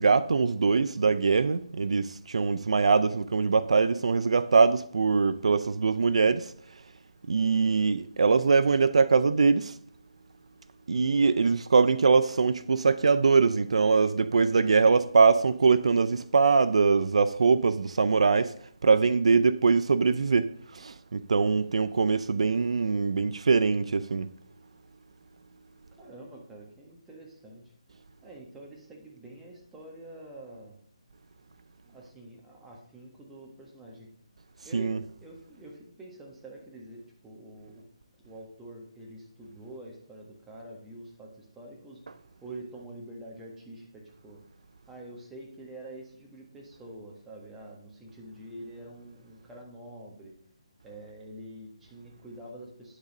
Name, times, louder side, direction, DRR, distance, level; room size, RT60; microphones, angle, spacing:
voice 1, 0.0-6.5 7.3-9.8 10.9-18.5 18.8-24.3 34.7-35.0, right 4 dB, 70° right, 0.4 m, -23 dB
voice 2, 25.9-27.6 28.2-30.8 31.8-34.1 34.6-37.8 38.2-42.0 42.4-44.4 44.9-50.3 50.8-53.0, right 1 dB, 5° right, 1.5 m, -46 dB
10.5 x 4.0 x 6.4 m
hypercardioid pair, 160°, 3 cm